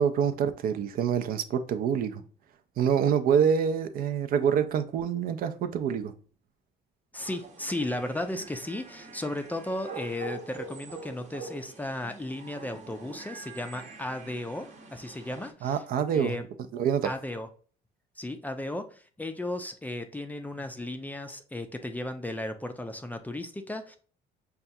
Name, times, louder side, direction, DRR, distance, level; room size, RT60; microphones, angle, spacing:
voice 1, 0.0-2.2 2.8-6.1 15.6-16.4 16.7-17.1, right 7 dB, 60° right, 0.4 m, -26 dB
voice 2, 7.1-15.8 16.1-16.4 17.0-17.5 18.2-24.0, left 1 dB, 10° left, 0.4 m, -35 dB
sound 1, 7.2-15.5, right 4 dB, 45° right, 0.8 m, -45 dB
5.5 x 2.3 x 2.6 m
cardioid pair, 110°, 17 cm